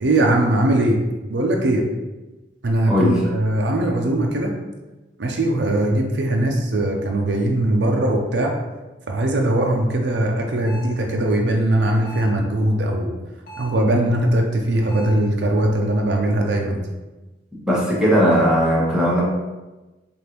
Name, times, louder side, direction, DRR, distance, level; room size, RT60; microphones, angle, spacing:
voice 1, 0.0-1.0 1.3-1.9 2.6-4.5 5.2-8.5 9.1-13.2 13.6-16.8, right 1 dB, 70° right, 1 dB, 0.5 m, -20 dB
voice 2, 2.9-3.2 17.7-19.2, equal, 5° right, -7 dB, 1.1 m, -17 dB
sound 1, 10.7-11.0 12.1-12.4 13.5-13.9 14.9-15.3, equal, 55° left, 1.0 m, -38 dB
5.0 x 2.5 x 2.9 m, 1.1 s
head